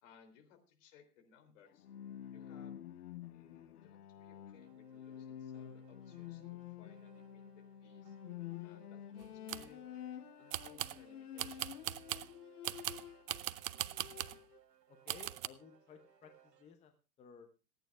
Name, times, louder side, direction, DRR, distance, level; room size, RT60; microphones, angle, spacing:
voice 1, 0.0-1.9 2.3-2.8 3.3-8.2 8.6-9.8 10.4-11.8, left 7 dB, 50° left, 6 dB, 3.3 m, -64 dB
Bowed string instrument, 1.7-13.4 13.8-14.6, left 11 dB, 65° left, 0.9 m, -49 dB
sound 1, 4.2-16.8, right 10 dB, 85° right, 1.5 m, -66 dB
sound 2, 9.2-9.7 10.5-11.0 11.4-12.3 12.6-14.4 15.1-15.5, right 13 dB, 55° right, 0.7 m, -40 dB
voice 2, 14.9-17.6, left 7 dB, 15° left, 7 dB, 0.8 m, -57 dB
26.0 x 9.2 x 2.4 m, 0.33 s
hypercardioid pair, 120°, 48 cm